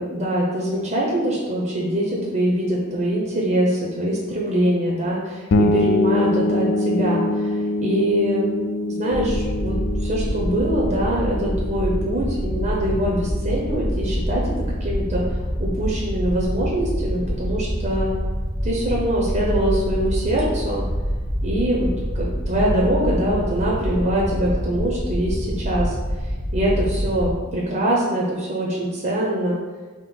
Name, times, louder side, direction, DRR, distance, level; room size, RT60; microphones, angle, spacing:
voice 1, 0.0-8.5 9.0-9.7 10.0-14.5 14.8-15.2 15.6-18.1 18.6-20.8 21.4-21.9 22.1-26.0 26.5-29.6, right 1 dB, 40° right, -4 dB, 0.8 m, -23 dB
sound 1, 5.5-15.1, left 1 dB, 65° left, 0.4 m, -25 dB
sound 2, 9.1-27.3, equal, 25° left, 0.9 m, -26 dB
3.7 x 3.1 x 4.3 m, 1.4 s
head